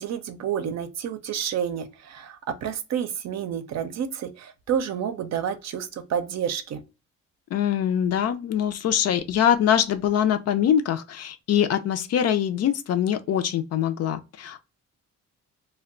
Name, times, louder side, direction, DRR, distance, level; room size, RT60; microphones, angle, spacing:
voice 1, 0.0-6.8, right 8 dB, 60° right, 0.6 m, -29 dB
voice 2, 7.5-14.6, left 9 dB, 55° left, 0.5 m, -23 dB
2.2 x 2.2 x 3.6 m
cardioid pair, 90°, 30 cm